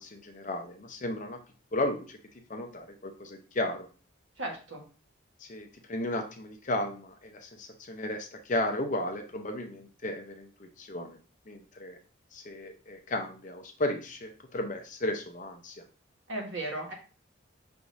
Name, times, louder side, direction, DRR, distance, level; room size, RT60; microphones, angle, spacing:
voice 1, 0.0-1.4 1.7-2.2 2.5-3.9 5.4-11.2 11.5-12.0 12.3-15.8, left 1 dB, 35° left, 5 dB, 0.6 m, -34 dB
voice 2, 4.4-4.8 16.3-16.9, right 1 dB, 65° right, 1 dB, 1.4 m, -35 dB
5.9 x 3.5 x 2.6 m, 0.36 s
head